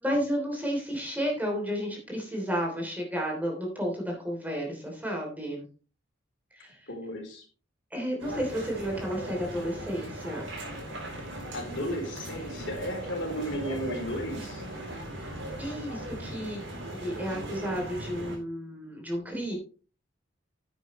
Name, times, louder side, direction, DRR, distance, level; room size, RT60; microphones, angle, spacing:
voice 1, 0.0-5.7 6.5-6.9 7.9-10.5 15.6-16.6 17.0-19.6, equal, 10° right, 0 dB, 3.2 m, -32 dB
voice 2, 6.9-7.4 11.5-14.6, equal, 70° left, 2 dB, 3.9 m, -34 dB
sound 1, 8.2-18.4, right 1 dB, 70° right, 5.5 m, -38 dB
10.5 x 9.6 x 3.2 m, 0.37 s
head